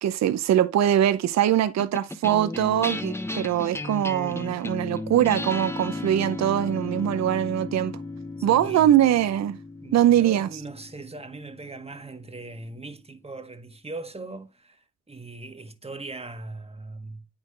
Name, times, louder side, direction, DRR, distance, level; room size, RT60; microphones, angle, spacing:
voice 1, 0.0-8.0 8.4-9.6 9.9-10.5, right 11 dB, 65° right, 0.7 m, -22 dB
sound 1, 1.8-12.4, left 2 dB, 10° left, 1.0 m, -35 dB
voice 2, 8.4-8.9 9.8-17.3, right 2 dB, 20° right, 1.6 m, -40 dB
8.8 x 5.7 x 3.2 m
cardioid pair, 70°, 29 cm